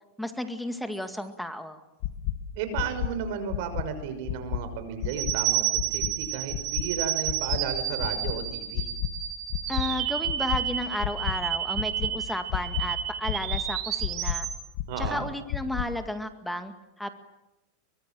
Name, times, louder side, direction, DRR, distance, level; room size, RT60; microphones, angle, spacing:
voice 1, 0.2-1.8 9.7-14.5 15.0-17.1, left 1 dB, ahead, 7 dB, 2.1 m, -33 dB
sound 1, 2.0-2.3 2.7-3.1 3.5-3.8 4.2-4.6 5.0-5.3 5.7-6.1 6.5-6.8 7.2-7.6 8.0-8.3 8.7-9.1 9.5-9.8 10.2-10.6 11.0-11.3 11.7-12.1 12.5-12.8 13.2-13.6 14.0-14.3 14.7-15.1 15.5-15.8, left 15 dB, 55° left, 2.1 m, -29 dB
voice 2, 2.6-8.9 14.9-15.3, right 7 dB, 60° right, 10 dB, 6.1 m, -34 dB
sound 2, 5.2-14.5, right 11 dB, 45° right, 4.3 m, -31 dB
23.5 x 23.5 x 7.8 m, 0.93 s
supercardioid pair, 140°, 0 cm